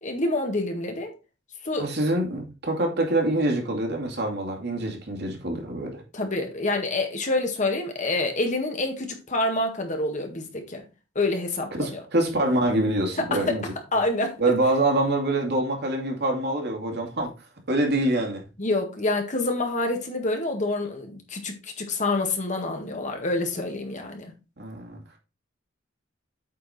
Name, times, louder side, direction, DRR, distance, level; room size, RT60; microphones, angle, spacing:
voice 1, 0.0-1.1 1.6-1.9 6.1-10.8 11.2-12.0 13.3-13.6 13.9-14.4 18.6-24.3, left 2 dB, 40° left, 1.8 m, -27 dB
voice 2, 1.8-6.0 11.7-13.6 14.4-17.3 17.7-18.4 24.6-25.0, right 1 dB, 55° right, 2.4 m, -25 dB
8.6 x 4.7 x 4.3 m
head